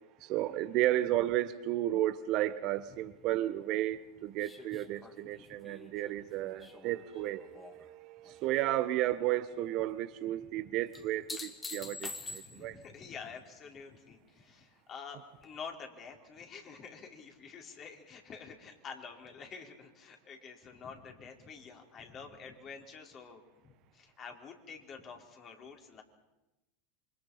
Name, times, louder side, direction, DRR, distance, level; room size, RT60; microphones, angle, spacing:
voice 1, 0.2-12.8, right 14 dB, 50° right, 12 dB, 1.2 m, -33 dB
sound 1, 4.4-7.9 8.2-8.8 10.9-12.8 15.4-15.5, left 3 dB, 20° left, 2.7 m, -46 dB
voice 2, 10.4-10.8 11.8-11.9 12.2-26.0, left 5 dB, 35° left, 2 dB, 4.5 m, -48 dB
27.5 x 25.0 x 5.7 m, 0.97 s
hypercardioid pair, 90°, 0 cm